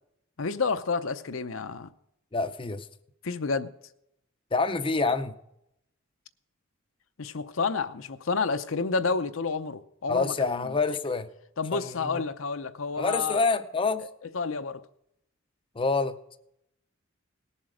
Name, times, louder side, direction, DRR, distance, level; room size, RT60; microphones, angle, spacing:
voice 1, 0.4-1.9 3.2-3.7 7.2-10.8 11.6-13.4 14.3-14.8, left 4 dB, 70° left, 9 dB, 0.7 m, -30 dB
voice 2, 2.3-2.9 4.5-5.3 10.1-11.3 11.7-12.2 13.0-14.0 15.8-16.2, left 4 dB, 25° left, 8 dB, 0.6 m, -27 dB
18.5 x 7.4 x 5.0 m, 0.78 s
head